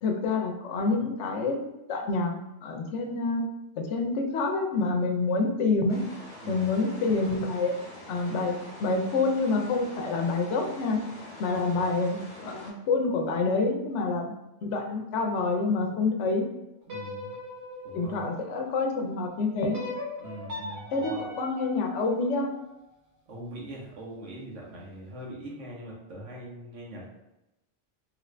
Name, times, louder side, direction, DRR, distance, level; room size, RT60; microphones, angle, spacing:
voice 1, 0.0-1.6 1.9-2.3 2.6-3.5 3.8-6.0 6.5-7.8 8.1-8.5 8.8-11.0 11.4-14.3 14.6-16.4 17.9-19.8 20.9-22.5, left 3 dB, 75° left, 3 dB, 0.9 m, -27 dB
sound 1, 5.9-12.7, left 1 dB, 30° left, 0.9 m, -45 dB
voice 2, 6.4-6.8 16.9-17.4 17.8-18.2 20.2-21.3 23.3-27.1, right 1 dB, 90° right, -3 dB, 1.2 m, -42 dB
sound 2, 16.8-19.0 19.7-22.9, left 2 dB, 65° right, 1.1 m, -40 dB
3.1 x 2.5 x 3.1 m, 0.94 s
omnidirectional pair, 1.2 m